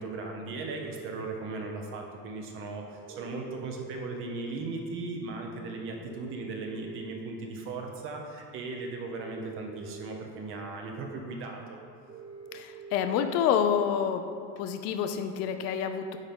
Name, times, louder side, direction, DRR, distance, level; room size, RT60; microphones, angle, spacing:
voice 1, 0.0-11.8, right 3 dB, 40° right, 2 dB, 0.9 m, -37 dB
sound 1, 0.7-1.1 3.1-4.1 6.1-7.1 9.1-10.1 12.1-13.1, right 6 dB, 80° right, 2.0 m, -46 dB
voice 2, 12.5-14.2 14.6-16.2, left 8 dB, 50° left, 8 dB, 0.6 m, -28 dB
9.1 x 3.9 x 5.4 m, 2.4 s
cardioid pair, 160°, 34 cm